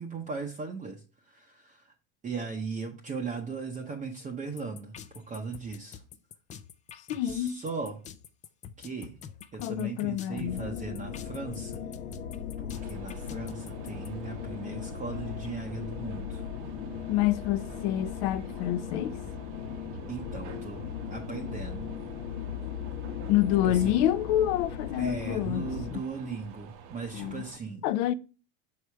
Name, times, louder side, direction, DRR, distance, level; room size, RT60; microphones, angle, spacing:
voice 1, 0.0-1.9 2.2-6.0 7.2-8.0 8.8-9.2 9.5-11.9 12.6-16.4 20.1-21.9 23.6-24.1 24.9-27.9, right 4 dB, 20° right, 0.7 m, -38 dB
sound 1, 4.6-14.1, left 8 dB, 20° left, 0.3 m, -46 dB
voice 2, 7.1-7.6 9.6-10.6 17.1-19.2 23.3-26.0 27.1-27.4 27.8-28.1, left 12 dB, 60° left, 0.6 m, -27 dB
sound 2, 10.5-25.9, left 8 dB, 85° left, 1.1 m, -38 dB
sound 3, 12.7-27.6, right 7 dB, 50° right, 0.9 m, -49 dB
6.4 x 4.8 x 3.3 m
supercardioid pair, 130°, 38 cm